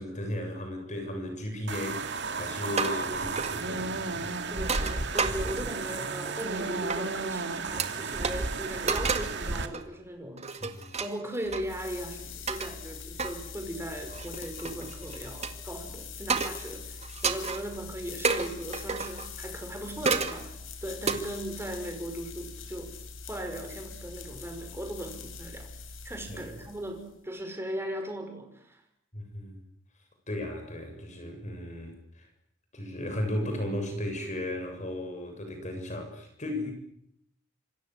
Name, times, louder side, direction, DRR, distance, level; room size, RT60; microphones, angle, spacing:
voice 1, 0.0-4.4 10.6-10.9 26.3-26.5 29.1-29.6 30.3-32.3 32.7-36.7, left 1 dB, 40° left, 5 dB, 7.6 m, -35 dB
sound 1, 1.7-9.7, right 3 dB, 60° right, 2.4 m, -33 dB
sound 2, 2.8-3.1 3.4-3.6 4.6-5.8 6.9-7.0 7.8-7.9 8.2-8.3 8.9-9.4 9.7-9.9 10.4-11.6 12.5-12.7 13.2-13.3 14.1-15.5 16.3-16.7 17.0-17.6 18.2-19.3 20.0-20.4 21.1-21.2, right 5 dB, 35° right, 2.1 m, -30 dB
voice 2, 4.5-10.5 11.0-20.5 20.8-22.9 23.2-25.7 26.0-28.8, right 1 dB, 15° right, 5 dB, 5.7 m, -38 dB
sound 3, 11.4-27.2, left 5 dB, 90° left, 4.4 m, -43 dB
27.0 x 25.5 x 7.9 m, 0.72 s
head